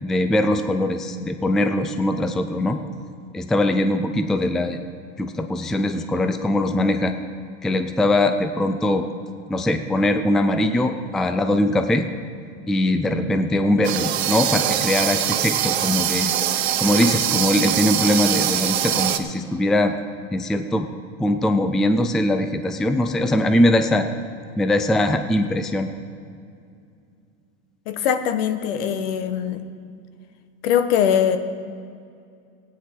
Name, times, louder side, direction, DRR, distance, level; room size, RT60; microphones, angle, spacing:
voice 1, 0.0-2.8 3.3-4.8 5.2-7.1 7.6-9.0 9.5-12.0 12.7-16.3 16.8-19.9 20.3-20.9 21.2-24.1 24.6-25.9, left 1 dB, ahead, 8 dB, 0.3 m, -21 dB
sound 1, 13.8-19.2, right 11 dB, 85° right, 1.0 m, -23 dB
voice 2, 27.9-29.6 30.6-31.4, left 8 dB, 70° left, 10 dB, 1.1 m, -21 dB
16.5 x 9.5 x 4.4 m, 2.4 s
supercardioid pair, 130°, 31 cm